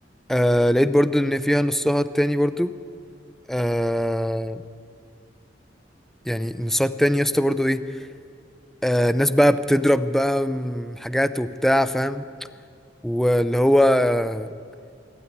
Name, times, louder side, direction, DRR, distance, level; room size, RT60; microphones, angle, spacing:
voice 1, 0.3-2.8 3.5-4.6 6.3-7.8 8.8-12.3 13.0-14.5, equal, ahead, 13 dB, 0.6 m, -21 dB
24.5 x 12.5 x 9.9 m, 2.3 s
head